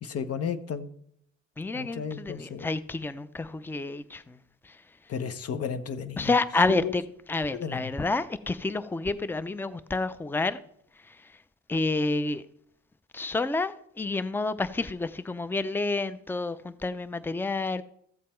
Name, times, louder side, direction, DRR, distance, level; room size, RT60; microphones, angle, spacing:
voice 1, 0.0-0.9 1.7-2.7 5.1-6.3 6.7-6.9 7.5-7.9, left 7 dB, 50° left, 1.0 m, -33 dB
voice 2, 1.6-4.4 4.6-4.8 6.2-7.0 7.3-10.6 11.0-11.3 11.7-12.4 13.1-17.8, left 3 dB, 5° left, 0.5 m, -29 dB
14.0 x 7.4 x 4.4 m
cardioid pair, 90°, 30 cm